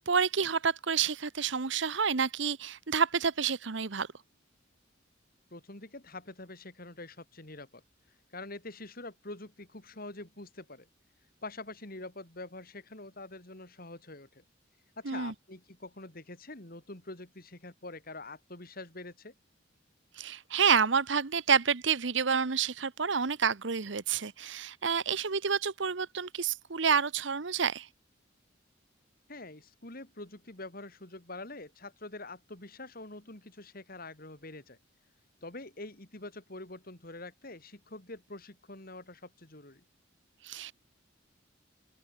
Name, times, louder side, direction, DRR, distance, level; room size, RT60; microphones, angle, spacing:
voice 1, 0.1-4.1 15.0-15.3 20.2-27.9 40.4-40.7, right 6 dB, 65° right, 1.0 m, -29 dB
voice 2, 5.5-7.8 8.3-10.9 11.4-14.4 15.0-19.3 29.3-34.8 35.4-39.8, left 2 dB, 50° left, 3.9 m, -45 dB
open air
head